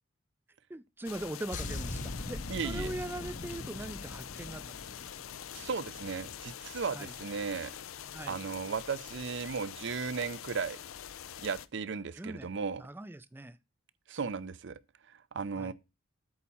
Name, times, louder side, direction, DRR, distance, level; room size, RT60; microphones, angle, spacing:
voice 1, 0.7-4.8 6.9-7.1 8.1-8.4 12.1-12.5 12.8-13.6 15.6-15.7, right 1 dB, 10° right, 0.4 m, -41 dB
sound 1, 1.0-11.7, left 9 dB, 85° left, 0.5 m, -45 dB
sound 2, 1.5-6.1 6.3-6.6, left 2 dB, 40° left, 0.6 m, -41 dB
voice 2, 2.5-2.9 5.5-7.7 8.3-10.8 11.4-12.8 14.1-14.8 15.1-15.7, right 5 dB, 60° right, 0.5 m, -36 dB
8.7 x 4.2 x 7.1 m
head